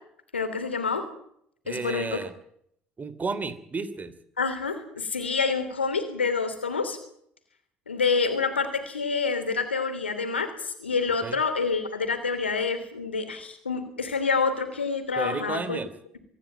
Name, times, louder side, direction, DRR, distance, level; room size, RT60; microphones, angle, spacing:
voice 1, 0.3-1.0 1.7-2.2 4.4-7.0 7.9-15.8, left 4 dB, 85° left, 10 dB, 3.0 m, -27 dB
voice 2, 1.6-2.3 3.0-4.1 11.2-11.4 15.2-15.9, right 4 dB, 30° right, 14 dB, 3.0 m, -32 dB
24.5 x 14.0 x 9.0 m, 0.69 s
figure-of-eight pair, 60°, 6 cm